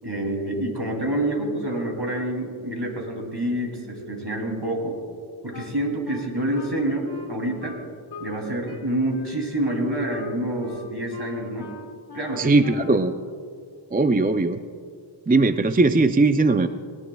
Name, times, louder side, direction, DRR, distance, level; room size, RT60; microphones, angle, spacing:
voice 1, 0.0-5.0 5.4-7.8 8.2-11.7 12.1-12.5, right 1 dB, 55° right, 0 dB, 2.8 m, -27 dB
Wind instrument woodwind instrument, 5.5-8.4 8.7-13.2, left 4 dB, 50° left, 1.2 m, -41 dB
voice 2, 12.4-13.1 13.9-14.6 15.3-16.7, right 3 dB, 20° right, 9 dB, 0.4 m, -19 dB
19.0 x 19.0 x 2.3 m, 2.2 s
wide cardioid pair, 50°, 49 cm